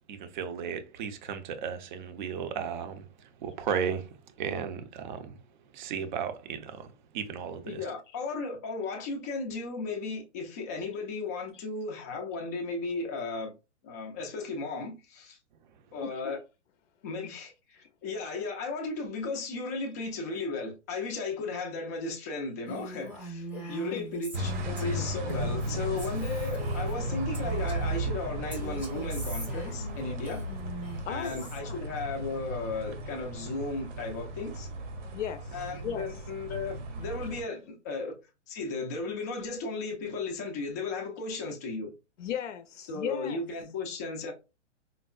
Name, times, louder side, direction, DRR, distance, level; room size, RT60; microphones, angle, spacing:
voice 1, 0.1-5.4 5.7-6.9 7.1-7.8, right 7 dB, 40° right, 0.5 m, -35 dB
voice 2, 7.7-13.5 13.8-15.4 15.9-16.4 17.0-24.5 24.8-30.4 31.1-34.7 35.5-38.2 38.5-41.9 42.8-44.3, left 3 dB, 15° left, 0.3 m, -35 dB
Female speech woman speaking, 22.7-28.0 28.5-31.6, right 1 dB, 5° right, 0.7 m, -43 dB
voice 3, 23.5-24.0 24.7-24.9 31.1-31.8 35.1-35.6 35.8-36.0 42.2-43.4, left 9 dB, 80° left, 0.5 m, -36 dB
sound 1, 24.3-37.4, right 1 dB, 80° right, 1.0 m, -35 dB
4.4 x 2.0 x 2.3 m
hypercardioid pair, 140°, 36 cm